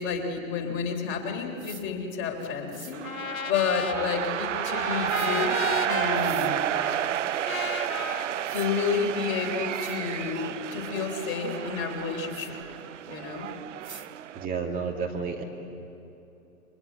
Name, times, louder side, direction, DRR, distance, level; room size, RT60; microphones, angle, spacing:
voice 1, 0.0-6.7 8.2-12.6 13.1-13.5, left 5 dB, 30° left, 3 dB, 3.7 m, -30 dB
sound 1, 1.6-1.8 2.7-2.9 5.1-5.3 6.1-6.5 8.0-8.1 8.4-8.7 9.3-9.4 9.7-10.0 12.3-12.5 13.8-14.1, right 5 dB, 80° right, 1.7 m, -45 dB
sound 2, 2.9-14.5, right 11 dB, 60° right, 0.6 m, -31 dB
Trumpet, 3.0-9.3, left 5 dB, 75° left, 1.5 m, -36 dB
voice 2, 14.3-15.4, right 5 dB, 20° right, 1 dB, 2.5 m, -31 dB
29.0 x 24.0 x 8.4 m, 3.0 s
figure-of-eight pair, 110°, 41 cm